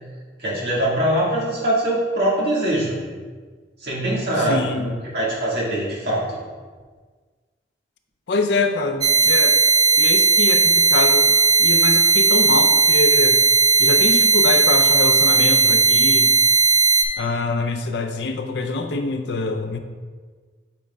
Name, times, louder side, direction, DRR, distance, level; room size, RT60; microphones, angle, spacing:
voice 1, 0.4-3.0 3.8-6.4, right 1 dB, 65° right, -5 dB, 1.8 m, -22 dB
voice 2, 4.4-4.9 8.3-9.6 10.0-13.4 13.8-16.3 17.2-19.8, left 3 dB, 70° left, 6 dB, 0.5 m, -24 dB
sound 1, 9.0-17.0, right 4 dB, 20° right, 0.4 m, -16 dB
8.5 x 5.0 x 2.3 m, 1.5 s
head